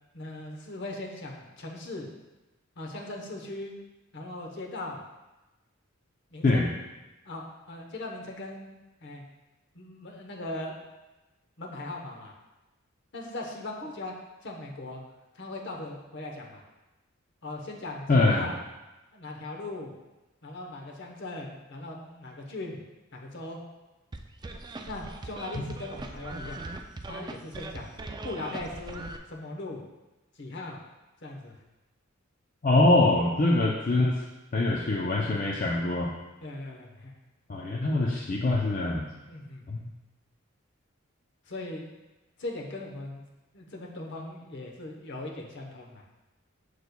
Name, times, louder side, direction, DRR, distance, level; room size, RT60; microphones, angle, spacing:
voice 1, 0.1-2.1 2.8-3.8 4.1-5.0 6.3-6.7 7.2-8.7 9.0-9.2 9.7-10.8 11.6-12.3 13.1-14.1 14.4-15.0 15.3-16.6 17.4-18.6 19.1-19.9 20.4-22.8 23.1-23.6 24.8-26.8 27.1-27.9 28.2-29.8 30.4-30.8 31.2-31.6 33.6-33.7 36.4-37.1 39.2-39.8 41.5-41.9 42.4-43.2 43.5-46.0, left 2 dB, 55° left, 0 dB, 0.9 m, -39 dB
voice 2, 18.1-18.5 25.6-25.7 32.6-34.2 34.5-36.1 37.5-39.1 39.7-39.9, left 2 dB, 40° left, -2 dB, 0.5 m, -24 dB
sound 1, 24.1-29.2, right 2 dB, 20° right, 0.3 m, -40 dB
6.7 x 6.2 x 2.2 m, 1.1 s
head